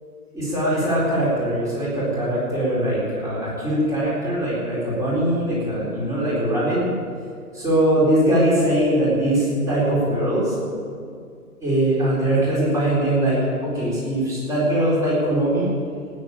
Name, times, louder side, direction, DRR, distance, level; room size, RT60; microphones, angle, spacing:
voice 1, 0.3-6.9 7.5-10.5 11.0-11.1 11.6-15.7, right 1 dB, 5° right, -7 dB, 4.2 m, -21 dB
16.5 x 9.7 x 8.6 m, 2.3 s
figure-of-eight pair, 150°, 47 cm